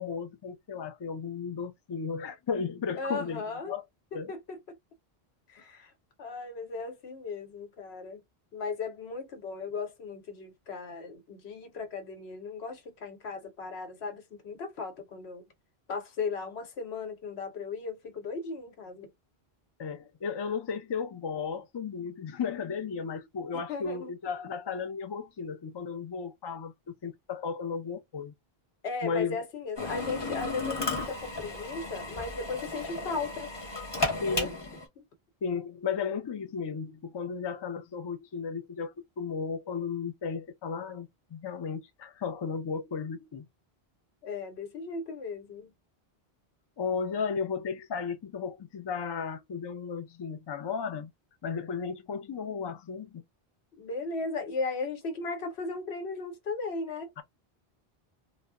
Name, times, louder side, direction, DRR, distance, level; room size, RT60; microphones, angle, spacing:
voice 1, 0.0-3.8 4.1-4.3 19.8-26.7 27.0-28.3 29.0-29.4 34.2-34.7 35.4-43.5 46.8-51.1 51.4-53.2 57.2-57.3, left 6 dB, 45° left, 0.3 m, -34 dB
voice 2, 3.0-3.7 4.1-4.6 5.5-5.9 6.2-8.2 8.5-15.4 15.9-19.1 23.5-24.1 28.8-33.5 34.1-34.5 35.0-35.1 44.2-45.7 53.8-57.1, left 4 dB, 90° left, 1.1 m, -36 dB
Drill, 29.8-34.8, left 3 dB, 25° left, 0.9 m, -34 dB
2.1 x 2.1 x 3.5 m
omnidirectional pair, 1.0 m